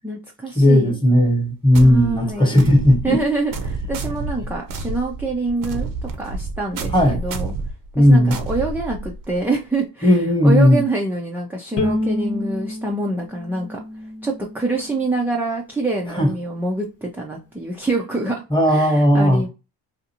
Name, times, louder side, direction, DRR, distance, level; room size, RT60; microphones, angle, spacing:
voice 1, 0.0-1.0 1.8-2.5 3.0-7.5 8.0-13.8 14.2-19.5, right 2 dB, 5° right, 0.3 m, -26 dB
voice 2, 0.6-3.2 6.9-7.2 7.9-8.3 10.0-10.8 16.1-16.3 18.5-19.4, left 1 dB, 10° left, 1.0 m, -15 dB
sound 1, 1.7-9.4, right 3 dB, 55° right, 0.6 m, -29 dB
Bowed string instrument, 11.8-15.0, left 1 dB, 35° left, 0.8 m, -28 dB
2.6 x 2.5 x 2.7 m
cardioid pair, 105°, 41 cm